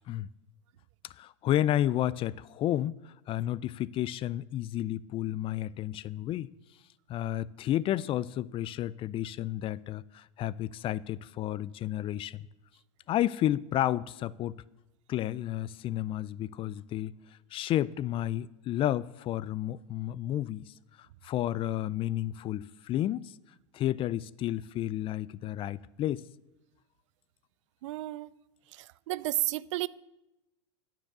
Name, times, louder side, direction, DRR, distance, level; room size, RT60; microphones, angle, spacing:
voice 1, 1.2-2.9 3.3-6.5 7.1-12.5 13.1-14.6 15.1-17.2 17.5-20.7 21.2-23.3 23.7-26.2, left 13 dB, 35° left, 0.3 m, -31 dB
voice 2, 27.8-28.3 28.7-29.9, right 17 dB, 70° right, 0.4 m, -32 dB
9.2 x 7.5 x 6.6 m
hypercardioid pair, 100°, 16 cm